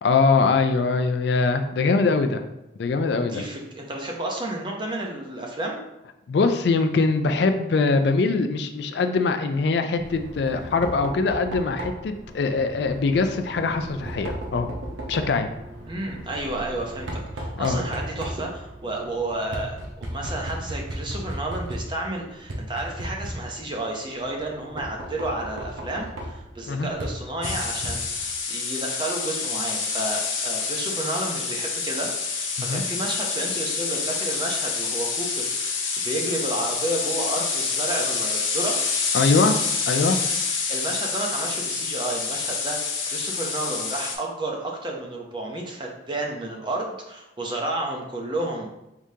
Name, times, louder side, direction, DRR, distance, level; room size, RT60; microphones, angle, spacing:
voice 1, 0.0-2.4 2.8-3.4 6.3-14.7 15.1-15.5 17.6-17.8 26.7-26.9 32.6-32.8 39.1-39.6 39.9-40.2, left 4 dB, 60° left, 7 dB, 0.3 m, -22 dB
voice 2, 3.1-5.8 15.9-38.8 40.7-48.7, right 2 dB, 25° right, 0 dB, 0.6 m, -31 dB
Knock, 10.0-28.4, right 1 dB, 80° right, 0.8 m, -36 dB
sound 1, 27.4-44.1, left 5 dB, 85° left, 0.8 m, -27 dB
4.7 x 3.6 x 2.7 m, 0.91 s
head